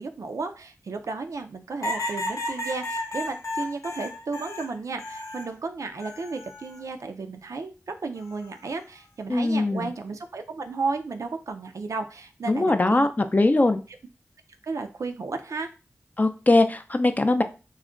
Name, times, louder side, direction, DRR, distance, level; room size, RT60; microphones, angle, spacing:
voice 1, 0.0-13.1 14.6-15.7, right 4 dB, 85° right, 6 dB, 0.4 m, -33 dB
sound 1, 1.8-5.5 6.0-6.8 8.2-8.6, left 1 dB, 85° left, 0.6 m, -33 dB
voice 2, 9.3-9.9 12.5-13.8 16.2-17.4, left 2 dB, 30° left, 8 dB, 0.4 m, -21 dB
2.3 x 2.1 x 3.6 m, 0.32 s
cardioid pair, 45°, 5 cm